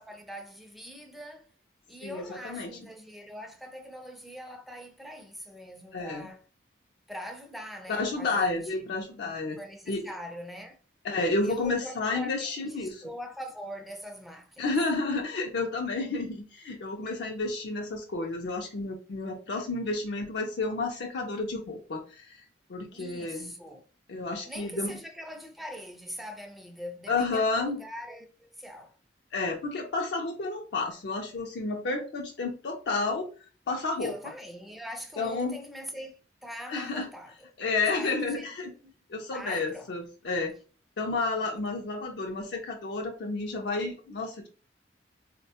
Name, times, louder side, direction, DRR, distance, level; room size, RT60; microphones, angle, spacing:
voice 1, 0.0-1.5 1.9-6.4 7.1-8.9 9.2-10.8 11.4-14.7 22.9-23.8 24.5-29.0 34.0-36.1 36.4-39.9, equal, ahead, 0.4 m, -43 dB
voice 2, 2.0-2.7 5.9-6.3 7.9-9.6 9.9-10.1 11.0-13.0 14.6-22.4 22.7-23.5 24.1-24.9 27.1-27.8 29.3-33.3 33.7-34.1 35.2-35.6 36.7-37.1 37.6-38.7 39.1-40.5 41.0-44.5, left 3 dB, 65° left, 0.4 m, -31 dB
3.9 x 2.1 x 2.8 m
head